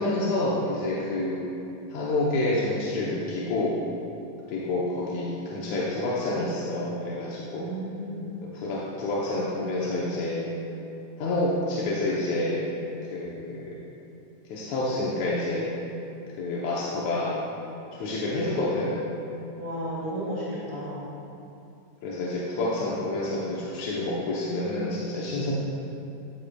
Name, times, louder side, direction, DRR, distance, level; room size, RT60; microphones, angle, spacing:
voice 1, 0.0-1.4 1.9-3.8 4.5-7.7 8.4-10.5 11.2-12.6 13.1-13.8 14.5-15.7 16.4-17.4 17.9-19.2 22.0-25.5, left 2 dB, 70° left, -5 dB, 2.0 m, -28 dB
voice 2, 7.5-8.3 16.8-17.1 19.6-21.1, right 1 dB, 5° right, -10 dB, 1.4 m, -34 dB
13.0 x 9.5 x 2.3 m, 2.8 s
omnidirectional pair, 3.9 m